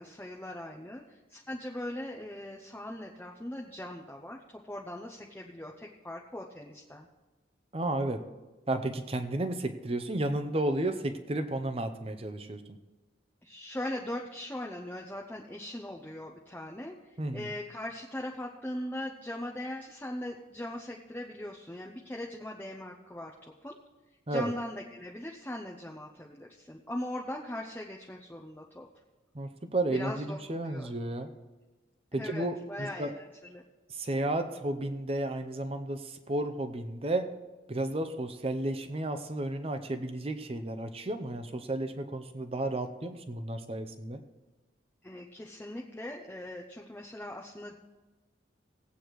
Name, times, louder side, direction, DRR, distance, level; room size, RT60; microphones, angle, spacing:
voice 1, 0.0-7.1 13.4-23.8 24.3-28.9 29.9-30.9 32.1-33.6 45.0-47.8, left 1 dB, 10° left, 0 dB, 0.5 m, -40 dB
voice 2, 7.7-8.2 8.7-12.8 17.2-17.5 24.3-24.5 29.3-31.3 32.1-33.1 33.9-37.3 37.7-44.2, right 1 dB, 30° right, 9 dB, 0.6 m, -33 dB
18.5 x 8.3 x 3.1 m, 1.2 s
head